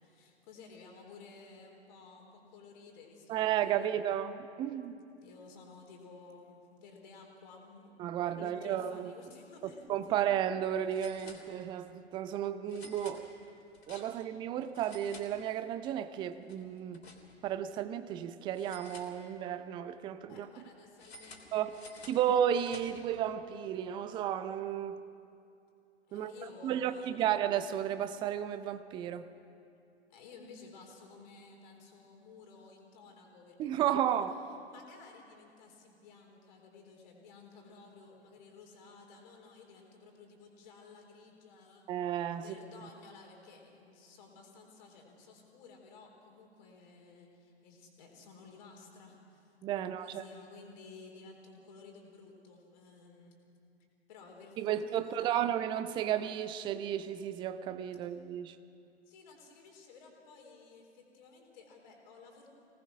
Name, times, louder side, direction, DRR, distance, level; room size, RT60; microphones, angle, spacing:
voice 1, 0.0-3.9 5.2-7.9 8.2-10.3 14.0-14.1 20.3-22.4 26.1-27.3 30.1-34.3 34.7-41.9 42.4-53.3 54.1-55.4 57.9-58.0 59.1-62.5, left 4 dB, 40° left, 4.2 m, -54 dB
voice 2, 3.3-5.0 8.0-9.1 9.6-13.3 13.9-17.0 17.4-20.5 21.5-21.7 22.1-25.0 26.1-26.3 26.6-29.3 33.6-34.3 41.9-42.6 49.6-50.2 54.6-58.6, right 10 dB, 15° right, 0.5 m, -33 dB
sound 1, 9.8-9.9 10.2-10.3 10.9-11.9 12.7-14.4 14.7-15.9 16.2-17.6 18.5-19.7 21.0-23.2, left 2 dB, 65° left, 3.5 m, -53 dB
25.5 x 18.5 x 6.2 m
figure-of-eight pair, 110°, 33 cm